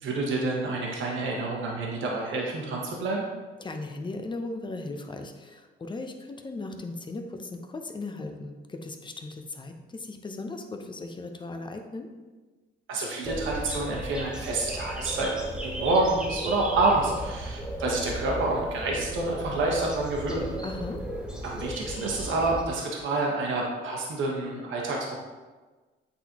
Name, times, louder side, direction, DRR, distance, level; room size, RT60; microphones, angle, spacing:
voice 1, 0.0-3.2 12.9-15.3 15.6-20.5 21.4-25.2, right 2 dB, 75° right, -2 dB, 1.2 m, -28 dB
voice 2, 3.6-12.1 20.6-21.0, left 2 dB, 25° left, 5 dB, 0.7 m, -37 dB
sound 1, 13.2-22.6, right 1 dB, 5° right, 1.0 m, -35 dB
8.1 x 4.0 x 2.9 m, 1.3 s
cardioid pair, 90°, 20 cm